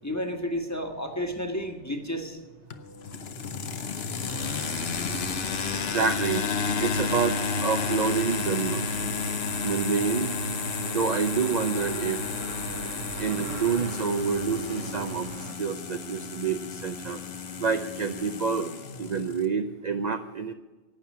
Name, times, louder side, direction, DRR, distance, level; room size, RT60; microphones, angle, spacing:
voice 1, 0.0-2.4, equal, 15° left, 4 dB, 1.5 m, -31 dB
sound 1, 2.7-19.5, left 5 dB, 60° left, 1.1 m, -32 dB
sound 2, 4.2-15.6, right 5 dB, 80° right, 1.4 m, -39 dB
voice 2, 5.9-6.4 6.8-8.9 9.6-10.3 10.9-12.2 13.2-17.2 17.6-18.7 19.0-20.5, right 6 dB, 45° right, 7 dB, 0.6 m, -28 dB
11.5 x 9.1 x 9.6 m, 1.2 s
omnidirectional pair, 1.3 m